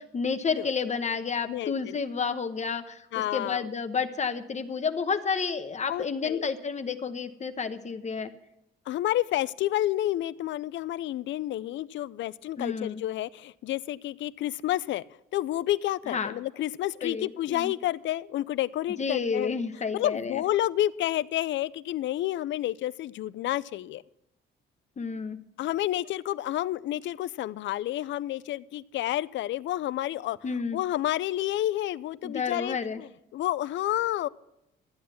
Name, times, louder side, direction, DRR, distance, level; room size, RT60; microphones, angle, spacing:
voice 1, 0.0-3.1 3.3-8.3 12.6-13.0 16.1-16.4 17.0-17.7 19.0-20.4 25.0-25.4 30.4-30.8 32.2-33.0, left 5 dB, 35° left, 9 dB, 0.9 m, -30 dB
voice 2, 1.5-2.0 3.1-3.7 5.9-6.5 8.9-15.0 15.3-19.5 19.9-24.0 25.6-30.4 30.7-34.3, left 14 dB, 70° left, 20 dB, 0.4 m, -30 dB
13.0 x 8.6 x 7.0 m, 0.88 s
cardioid pair, 90°, 20 cm